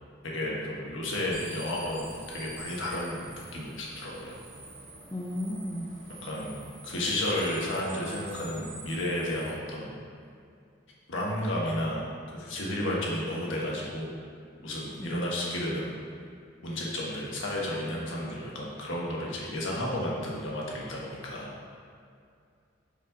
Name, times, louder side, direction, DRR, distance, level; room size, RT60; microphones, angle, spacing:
voice 1, 0.2-4.4 6.2-10.0 11.1-12.1 12.3-14.1 14.6-16.0 16.6-21.5, left 1 dB, 85° left, -4 dB, 1.3 m, -32 dB
sound 1, 1.3-9.5, right 2 dB, 55° right, 1.3 m, -46 dB
voice 2, 5.1-5.9 15.0-15.8, equal, 15° left, -1 dB, 0.5 m, -35 dB
5.3 x 5.3 x 3.9 m, 2.4 s
head